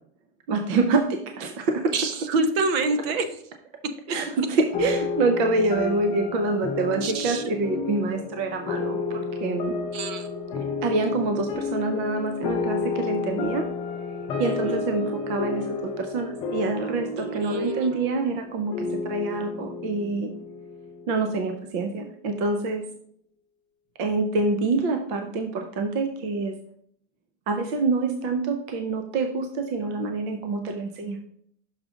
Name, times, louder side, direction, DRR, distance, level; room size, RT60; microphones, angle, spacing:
voice 1, 0.5-2.0 4.1-9.8 10.6-13.7 14.4-20.3 21.1-22.8 24.0-26.5 27.5-31.2, right 3 dB, 35° right, 5 dB, 0.5 m, -26 dB
voice 2, 1.9-3.3 7.0-7.5 9.9-10.3 14.4-14.8 17.2-18.0, right 3 dB, 55° right, 9 dB, 0.9 m, -27 dB
sound 1, 4.7-21.5, left 4 dB, 15° left, 0.4 m, -31 dB
6.3 x 5.0 x 3.7 m, 0.67 s
supercardioid pair, 180°, 36 cm